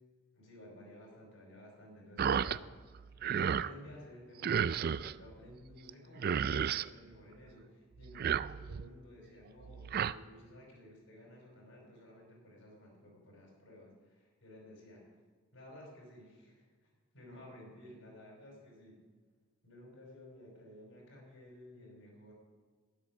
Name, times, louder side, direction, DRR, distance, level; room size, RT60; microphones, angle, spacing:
voice 1, 0.3-3.0 3.3-15.2 15.5-16.9 17.1-19.0 19.6-22.3, left 1 dB, 70° left, -2 dB, 5.1 m, -54 dB
sound 1, 2.2-2.6 2.9-3.7 4.4-5.1 5.9-6.0 6.2-6.9 8.0-8.9 9.6-10.1, right 7 dB, 45° right, 0.3 m, -32 dB
12.5 x 10.5 x 6.1 m, 1.5 s
head